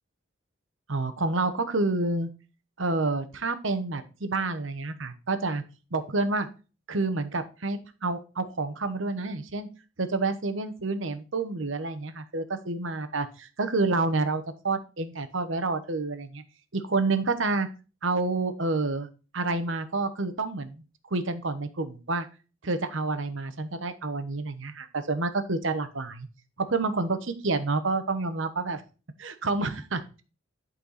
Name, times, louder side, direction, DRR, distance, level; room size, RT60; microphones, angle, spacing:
voice 1, 0.9-2.3 2.8-5.6 5.9-6.5 6.9-9.7 10.0-16.4 16.7-17.7 18.0-19.1 19.3-22.3 22.6-26.3 26.6-28.8 29.2-30.2, right 3 dB, 65° right, 10 dB, 1.1 m, -29 dB
11.5 x 4.4 x 4.1 m, 0.33 s
head